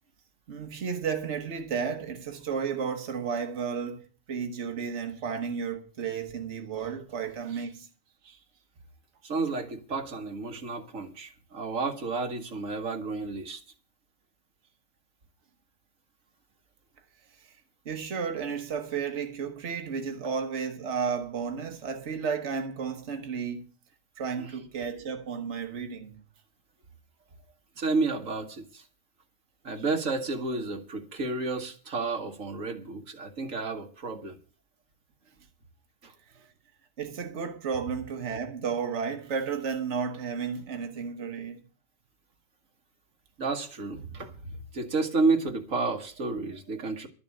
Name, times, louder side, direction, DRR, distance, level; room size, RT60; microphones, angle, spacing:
voice 1, 0.5-7.9 8.2-8.4 17.4-17.6 17.8-23.6 24.2-26.2 36.3-36.5 37.0-41.6, right 6 dB, 65° right, 1.6 m, -33 dB
voice 2, 9.2-13.6 24.4-24.5 27.8-28.8 29.6-34.4 36.0-36.1 43.4-47.1, right 3 dB, 90° right, 2.0 m, -31 dB
12.5 x 7.1 x 8.4 m
omnidirectional pair, 1.3 m